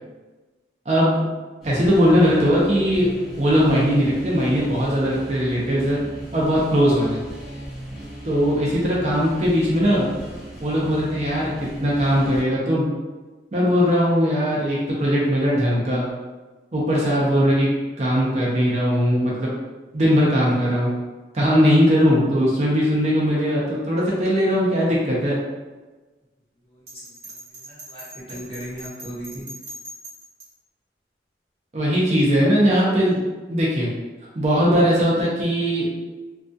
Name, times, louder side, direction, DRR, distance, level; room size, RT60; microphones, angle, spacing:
voice 1, 0.9-1.2 1.6-3.1 3.4-6.0 6.3-7.2 8.2-10.1 10.6-11.5 11.8-12.9 13.5-16.1 16.7-17.7 18.0-19.5 19.9-20.9 21.3-25.4 31.7-33.2 33.5-33.9 34.4-35.9, equal, 40° right, -5 dB, 0.4 m, -19 dB
sound 1, 1.6-12.4, right 1 dB, ahead, 0.8 m, -37 dB
voice 2, 26.7-29.5, right 1 dB, 30° left, -9 dB, 0.9 m, -38 dB
Bell, 26.9-30.5, right 1 dB, 55° right, 1.0 m, -40 dB
2.2 x 2.2 x 2.5 m, 1.3 s
head